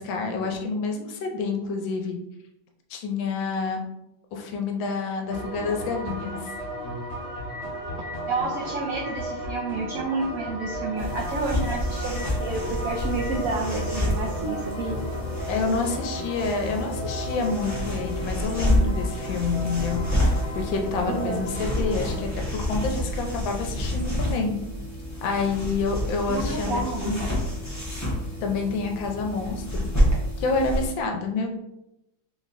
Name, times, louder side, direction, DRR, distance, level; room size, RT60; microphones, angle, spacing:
voice 1, 0.0-2.2 2.9-3.8 4.3-6.5 15.5-24.6 25.2-27.3 28.4-29.9 30.4-31.5, left 4 dB, 80° left, 3 dB, 1.3 m, -28 dB
sound 1, 5.3-22.2, equal, 50° left, 1.1 m, -34 dB
voice 2, 8.3-15.0 21.1-21.4 26.3-27.1, right 3 dB, 85° right, -1 dB, 0.7 m, -30 dB
sound 2, 11.0-30.8, left 1 dB, 25° left, 0.3 m, -29 dB
4.0 x 3.5 x 2.5 m, 0.89 s
omnidirectional pair, 2.1 m